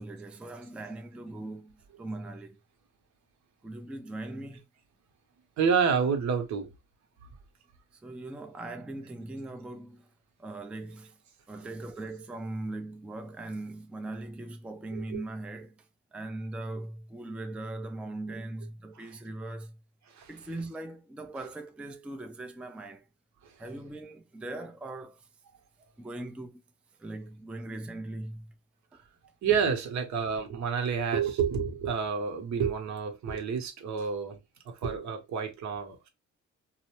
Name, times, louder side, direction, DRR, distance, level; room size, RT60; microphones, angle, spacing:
voice 1, 0.0-2.6 3.6-4.6 8.0-10.1 10.4-11.2 11.5-15.8 16.1-19.8 20.3-23.0 23.6-25.3 26.0-26.6 27.0-28.5, right 2 dB, 5° right, 0.3 m, -40 dB
voice 2, 5.6-6.7 11.5-11.7 14.9-15.2 19.0-19.1 20.1-20.3 23.4-23.6 28.9-29.0 29.4-34.4 34.6-36.1, right 6 dB, 70° right, 0.9 m, -29 dB
2.7 x 2.0 x 2.9 m
cardioid pair, 90°, 30 cm